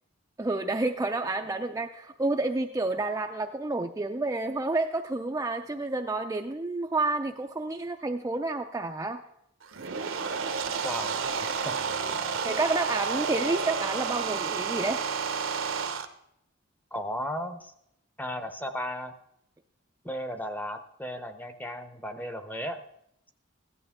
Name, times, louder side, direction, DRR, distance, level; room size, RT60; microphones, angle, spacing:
voice 1, 0.4-9.2 12.4-15.0, right 2 dB, 15° right, 4 dB, 0.4 m, -29 dB
sound 1, 9.6-16.1, right 5 dB, 75° right, 0.9 m, -30 dB
voice 2, 10.8-11.4 11.6-11.8 12.1-12.3 16.9-17.7 18.2-19.1 20.0-22.8, equal, 10° left, 9 dB, 0.7 m, -35 dB
15.5 x 11.0 x 3.6 m, 0.77 s
head